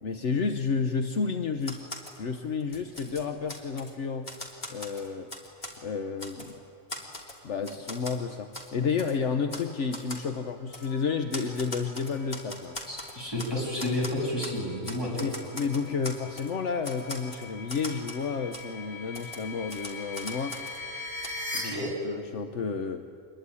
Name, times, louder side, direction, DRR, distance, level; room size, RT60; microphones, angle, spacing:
voice 1, 0.0-1.9 2.2-4.3 4.7-5.3 5.8-6.6 7.4-12.8 15.2-20.6 21.5-21.7 22.0-23.0, left 5 dB, 65° left, 7 dB, 1.2 m, -31 dB
Typewriter, 1.6-2.2 2.6-3.9 4.2-5.8 6.2-6.5 6.9-8.2 8.5-8.7 9.0-9.1 9.5-9.7 9.9-10.2 10.7-10.9 11.3-13.5 13.8-14.6 14.8-16.5 16.8-18.2 18.5-18.7 19.1-20.8 21.2-21.3, left 1 dB, 45° left, 3.2 m, -40 dB
sound 1, 10.6-21.6, left 2 dB, 85° left, 7.4 m, -43 dB
voice 2, 12.9-15.3 21.6-21.9, left 1 dB, 20° left, -3 dB, 7.5 m, -31 dB
26.0 x 21.5 x 9.8 m, 2.6 s
omnidirectional pair, 1.3 m